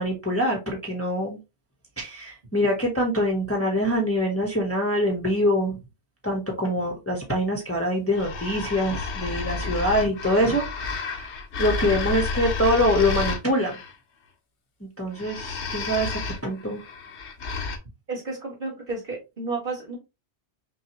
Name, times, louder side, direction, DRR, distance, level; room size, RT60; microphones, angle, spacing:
voice 1, 0.0-1.4 2.0-5.8 6.2-11.3 11.6-13.8 14.8-16.8, equal, 15° left, 0.8 m, -24 dB
sound 1, 8.1-13.9 15.1-17.8, left 4 dB, 70° left, 1.1 m, -31 dB
voice 2, 18.1-20.0, right 3 dB, 50° right, 2.4 m, -32 dB
5.7 x 2.4 x 2.8 m
omnidirectional pair, 1.2 m